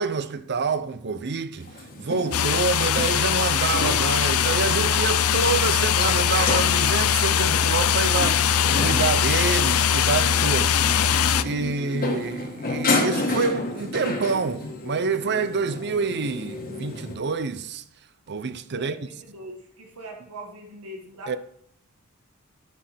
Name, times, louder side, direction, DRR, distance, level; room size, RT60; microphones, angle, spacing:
voice 1, 0.0-1.7 2.0-10.8 11.4-17.8 18.3-19.0 21.3-21.4, right 4 dB, 50° right, 0.7 m, -27 dB
sound 1, 1.6-17.1, left 2 dB, 40° left, 1.6 m, -32 dB
sound 2, 2.3-11.4, left 8 dB, 75° left, 0.5 m, -21 dB
voice 2, 18.7-21.4, right 1 dB, 80° right, 1.5 m, -41 dB
10.0 x 9.4 x 3.5 m
head